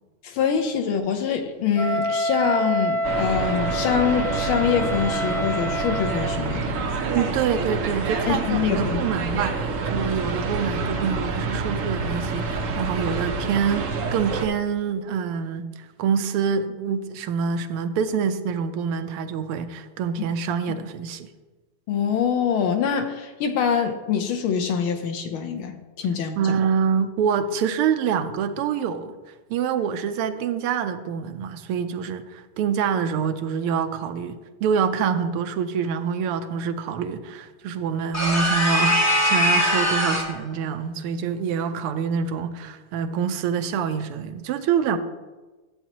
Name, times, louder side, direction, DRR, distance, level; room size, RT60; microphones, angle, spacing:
voice 1, 0.2-7.0 8.3-9.0 21.9-26.6, left 7 dB, 75° left, 4 dB, 1.6 m, -24 dB
Wind instrument woodwind instrument, 1.8-6.4, equal, 55° left, 1.6 m, -27 dB
sound 1, 3.0-14.5, right 4 dB, 70° right, 0.7 m, -27 dB
voice 2, 7.0-15.7 16.0-21.3 26.4-29.2 29.5-45.0, right 7 dB, 90° right, 9 dB, 1.5 m, -26 dB
sound 2, 38.1-40.4, equal, 15° left, 0.6 m, -21 dB
11.0 x 8.1 x 3.0 m, 1.2 s
omnidirectional pair, 2.4 m